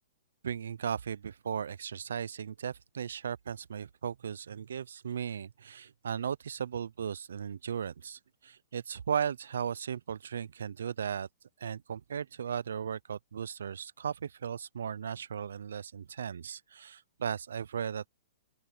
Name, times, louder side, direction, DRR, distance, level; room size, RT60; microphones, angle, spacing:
voice 1, 0.4-11.3 11.6-18.1, right 8 dB, 85° right, 0.4 m, -36 dB
open air
hypercardioid pair, 160°, 0 cm